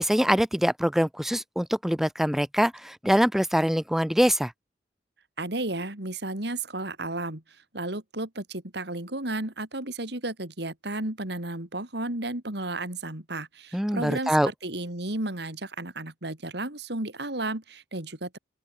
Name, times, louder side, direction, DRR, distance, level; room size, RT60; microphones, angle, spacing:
voice 1, 0.0-4.5 13.7-14.5, equal, ahead, 0.8 m, -24 dB
voice 2, 5.4-7.4 7.7-18.4, right 2 dB, 65° right, 3.9 m, -33 dB
open air
head